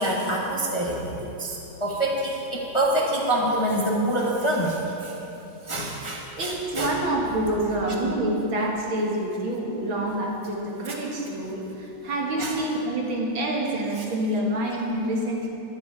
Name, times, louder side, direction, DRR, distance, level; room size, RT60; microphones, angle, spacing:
voice 1, 0.0-4.8 5.0-5.1 5.7-6.9 10.9-11.0 12.4-12.5, right 1 dB, 25° left, -2 dB, 0.7 m, -26 dB
voice 2, 6.4-15.5, right 1 dB, 90° right, -2 dB, 2.6 m, -27 dB
12.5 x 11.5 x 4.7 m, 3.0 s
omnidirectional pair, 2.1 m